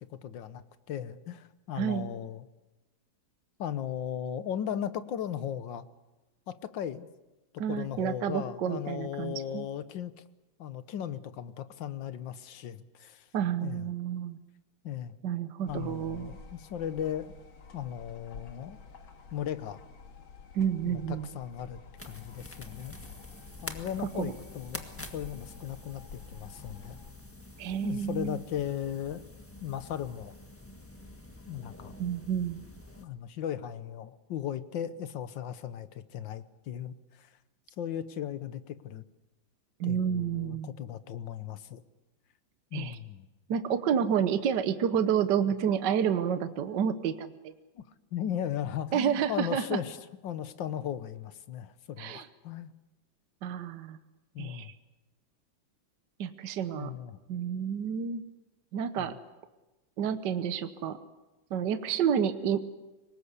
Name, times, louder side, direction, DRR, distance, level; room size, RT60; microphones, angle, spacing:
voice 1, 0.1-2.4 3.6-5.9 6.5-7.1 7.7-10.1 10.6-13.3 13.6-13.9 14.8-15.2 15.6-17.3 17.7-18.8 19.3-19.8 20.8-21.8 22.0-22.9 23.6-27.0 27.8-29.2 29.6-30.3 31.5-31.9 33.0-37.3 37.8-39.0 39.8-41.8 42.7-43.3 47.7-47.9 48.1-50.0 50.2-52.7 54.3-54.7 56.7-57.2 59.0-59.2, left 10 dB, 70° left, 13 dB, 1.7 m, -37 dB
voice 2, 1.8-2.1 7.6-9.7 13.3-14.4 15.2-16.3 20.5-21.3 24.1-24.3 27.6-28.4 32.0-32.6 39.8-40.7 42.7-43.0 43.5-47.5 48.9-49.8 52.0-52.3 53.4-54.0 54.4-54.7 56.2-56.9 57.3-58.2 58.7-59.1 60.0-61.0 61.5-62.8, right 8 dB, 65° right, 10 dB, 1.6 m, -30 dB
sound 1, 15.7-27.1, left 5 dB, 85° left, 2.8 m, -50 dB
sound 2, 22.0-33.0, left 1 dB, 5° left, 1.4 m, -47 dB
24.0 x 20.0 x 8.2 m, 1.1 s
omnidirectional pair, 2.2 m